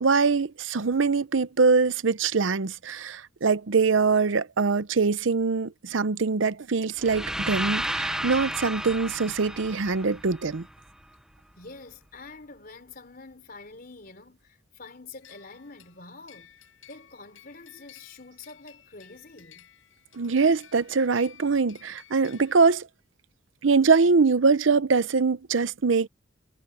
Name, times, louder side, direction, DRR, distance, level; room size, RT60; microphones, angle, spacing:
voice 1, 0.0-10.7 20.1-22.9 23.6-26.1, right 4 dB, 75° right, 0.7 m, -23 dB
sound 1, 7.0-11.0, right 1 dB, 5° right, 0.7 m, -32 dB
voice 2, 11.6-16.6 16.9-19.7, left 3 dB, 50° left, 4.0 m, -46 dB
sound 2, 15.2-22.5, left 10 dB, 85° left, 6.5 m, -54 dB
head